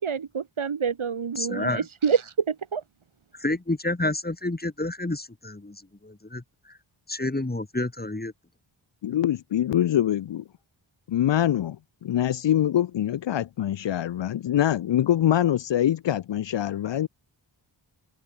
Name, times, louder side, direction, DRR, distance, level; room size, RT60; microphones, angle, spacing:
voice 1, 0.0-2.2 2.5-2.8, right 6 dB, 80° right, 2.1 m, -27 dB
voice 2, 1.4-1.9 3.3-6.8 7.1-8.3, left 2 dB, 20° left, 2.2 m, -29 dB
voice 3, 9.0-10.4 11.1-11.8 12.0-17.1, left 11 dB, 65° left, 0.5 m, -24 dB
open air
wide cardioid pair, 80°, 48 cm